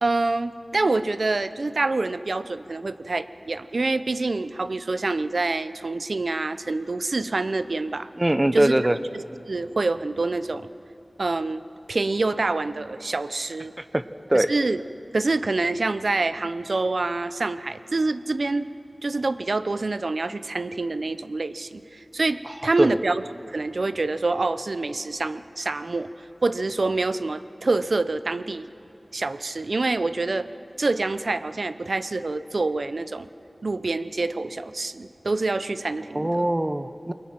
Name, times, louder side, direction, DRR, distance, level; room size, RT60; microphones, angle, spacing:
voice 1, 0.0-8.1 8.5-8.7 9.1-10.7 11.2-11.6 11.9-13.7 14.3-14.8 15.1-18.7 19.0-21.8 22.1-23.2 23.5-26.1 26.4-28.7 29.1-30.5 30.8-33.3 33.6-36.5, right 3 dB, 80° right, 13 dB, 0.7 m, -26 dB
voice 2, 8.2-9.0 13.8-14.0 14.3-14.5 22.8-23.0 36.1-37.1, right 1 dB, 30° right, 11 dB, 0.9 m, -22 dB
28.0 x 22.5 x 6.0 m, 2.8 s
wide cardioid pair, 65°, 0 cm